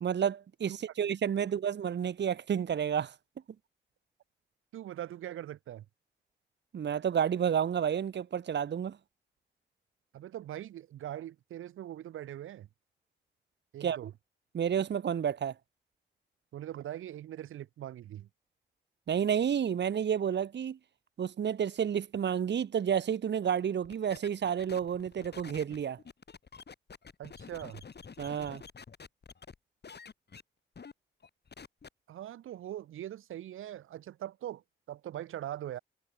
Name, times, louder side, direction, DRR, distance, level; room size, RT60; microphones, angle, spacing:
voice 1, 0.0-3.1 6.7-9.0 13.8-14.0 14.5-15.5 19.1-20.8 21.2-26.0 28.2-28.6, right 8 dB, 60° right, 1.0 m, -30 dB
voice 2, 4.7-5.9 10.1-12.7 13.7-14.1 16.5-18.3 27.2-27.8 32.1-35.8, right 12 dB, 85° right, 2.2 m, -42 dB
sound 1, 23.8-29.6 29.8-30.4 30.8-30.9 31.2-31.9, left 5 dB, 55° left, 4.5 m, -49 dB
supercardioid pair, 45°, 20 cm